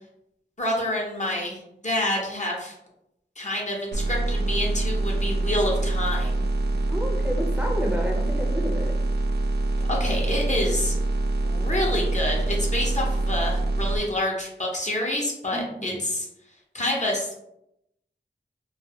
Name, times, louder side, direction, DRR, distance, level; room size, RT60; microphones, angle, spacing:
voice 1, 0.6-2.7 3.4-6.5 9.9-11.0 11.4-16.3 16.7-17.4, left 1 dB, 40° left, -3 dB, 0.6 m, -28 dB
sound 1, 3.9-14.0, right 2 dB, 60° right, 0.4 m, -25 dB
voice 2, 6.9-8.9 15.5-16.0, equal, 5° right, 0 dB, 0.6 m, -30 dB
2.3 x 2.3 x 2.7 m, 0.81 s
wide cardioid pair, 60°, 19 cm